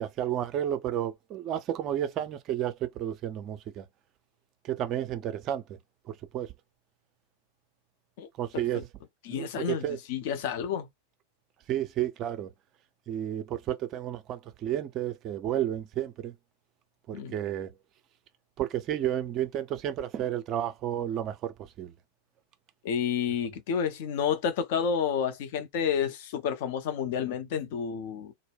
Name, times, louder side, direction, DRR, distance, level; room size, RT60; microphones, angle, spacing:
voice 1, 0.0-3.8 4.6-5.6 6.3-6.5 8.4-8.9 9.3-10.0 11.7-12.5 13.1-16.3 17.1-17.7 18.6-21.9, right 11 dB, 35° right, 0.5 m, -31 dB
voice 2, 9.2-10.9 17.1-17.4 22.8-28.3, left 7 dB, 50° left, 0.5 m, -30 dB
2.1 x 2.0 x 3.3 m
figure-of-eight pair, 90°, 0 cm